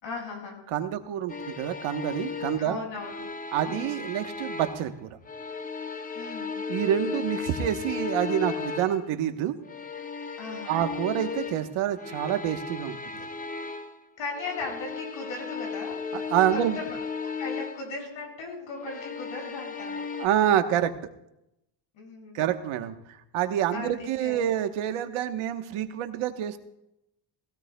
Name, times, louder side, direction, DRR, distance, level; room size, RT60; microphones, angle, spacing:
voice 1, 0.0-0.6 2.6-3.3 3.6-4.0 6.1-6.6 10.4-10.8 14.2-16.2 16.5-20.1 21.9-22.4 23.7-24.5, left 3 dB, 65° left, 0 dB, 6.0 m, -38 dB
voice 2, 0.7-2.8 3.5-5.1 6.7-9.6 10.7-13.3 16.1-16.8 20.2-20.9 22.3-22.9 23.3-26.6, right 10 dB, 75° right, 8 dB, 1.2 m, -27 dB
sound 1, 1.3-4.9 5.2-9.1 9.6-14.0 14.3-17.9 18.7-20.3, left 5 dB, 15° left, 0.6 m, -35 dB
20.0 x 16.5 x 2.3 m, 0.83 s
cardioid pair, 135°, 49 cm